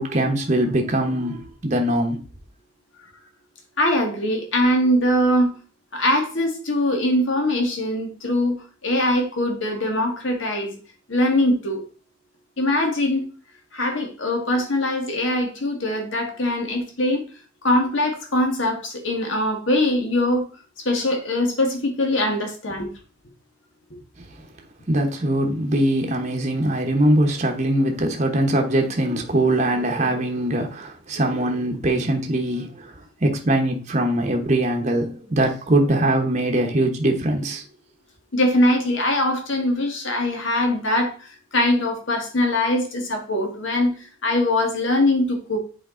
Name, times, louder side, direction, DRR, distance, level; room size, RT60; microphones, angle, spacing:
voice 1, 0.0-2.2 24.9-32.9 33.2-37.6, right 1 dB, 35° right, 1.0 m, -22 dB
voice 2, 3.8-5.5 5.9-8.6 8.8-10.8 11.1-11.8 12.6-13.2 13.7-17.2 17.6-20.5 20.9-22.9 23.9-24.0 38.3-43.9 44.2-45.6, left 1 dB, 60° left, 1.8 m, -22 dB
7.4 x 4.5 x 3.8 m
head